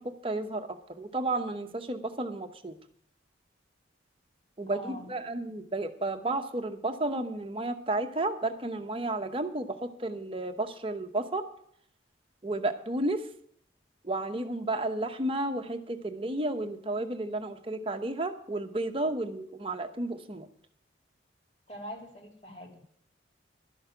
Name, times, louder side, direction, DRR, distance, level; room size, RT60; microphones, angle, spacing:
voice 1, 0.0-2.8 4.6-11.5 12.4-13.3 14.0-20.5, right 2 dB, 30° right, 6 dB, 0.9 m, -32 dB
voice 2, 4.7-5.1 21.7-22.8, equal, 35° left, 1 dB, 3.1 m, -43 dB
12.0 x 6.4 x 8.9 m, 0.64 s
head